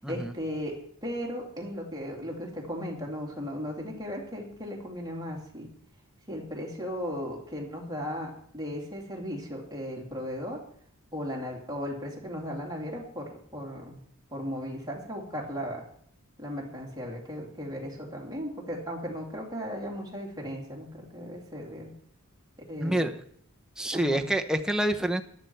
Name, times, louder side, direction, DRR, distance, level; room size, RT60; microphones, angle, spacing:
voice 1, 0.0-5.7 6.3-10.6 11.1-14.0 14.3-15.8 16.4-21.9 22.7-23.1 23.9-24.3, equal, 20° right, -1 dB, 2.8 m, -36 dB
voice 2, 22.8-23.1 23.8-25.2, right 1 dB, 5° right, 5 dB, 0.8 m, -27 dB
13.5 x 10.5 x 4.5 m, 0.64 s
head